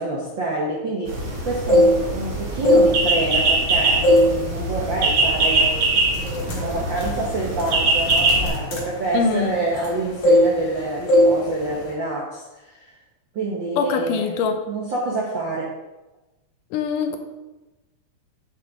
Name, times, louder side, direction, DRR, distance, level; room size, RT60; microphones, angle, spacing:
voice 1, 0.0-12.9 13.3-14.3 14.7-15.7, right 2 dB, 75° right, -3 dB, 1.1 m, -27 dB
sound 1, 1.1-8.5, right 3 dB, 55° right, 2.4 m, -22 dB
sound 2, 1.5-2.2 2.6-3.6 4.0-4.4 4.7-5.0 5.6-5.8 6.1-9.9 10.2-10.8 11.1-11.4 11.6-11.9, equal, 50° left, 2.0 m, -18 dB
voice 2, 9.1-9.5 13.8-14.6 16.7-17.2, left 5 dB, 90° left, 6 dB, 2.3 m, -23 dB
9.3 x 5.9 x 3.5 m, 1.1 s
omnidirectional pair, 3.6 m